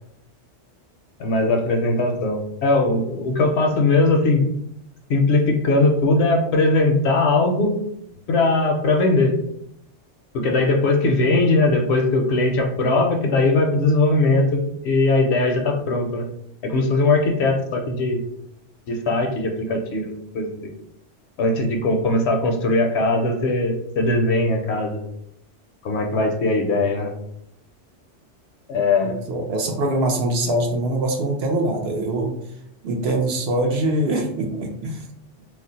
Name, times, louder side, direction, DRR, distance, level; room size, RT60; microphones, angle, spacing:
voice 1, 1.2-4.4 5.1-7.7 8.3-9.3 10.3-16.2 16.6-18.2 18.9-20.5 21.4-25.0 25.8-27.1 28.7-29.2, left 2 dB, 70° left, 2 dB, 0.8 m, -20 dB
voice 2, 29.0-32.3 32.8-35.0, right 1 dB, 65° right, 2 dB, 0.8 m, -23 dB
2.4 x 2.0 x 3.8 m, 0.76 s
omnidirectional pair, 1.2 m